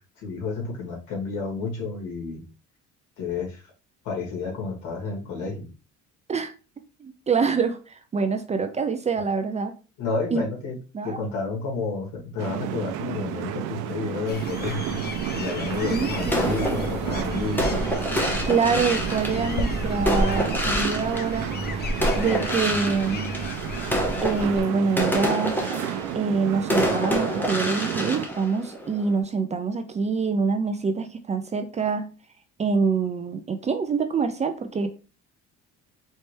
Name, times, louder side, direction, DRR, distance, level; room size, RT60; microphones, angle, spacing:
voice 1, 0.2-2.4 3.2-3.6 4.0-5.7 10.0-10.8 11.0-15.1 15.3-17.9, left 4 dB, 75° left, 2.1 m, -30 dB
voice 2, 7.0-9.7 10.3-10.4 10.9-11.2 15.9-16.8 18.5-21.5 22.2-23.3 24.2-25.6 26.1-32.1 32.6-34.9, right 5 dB, 25° right, 0.4 m, -25 dB
sound 1, 12.4-28.3, right 11 dB, 90° right, 0.6 m, -32 dB
sound 2, 14.3-24.6, left 1 dB, 35° left, 0.6 m, -32 dB
sound 3, 16.3-21.7 22.0-29.2, equal, 5° left, 1.0 m, -28 dB
4.3 x 3.2 x 3.1 m
cardioid pair, 130°, 30 cm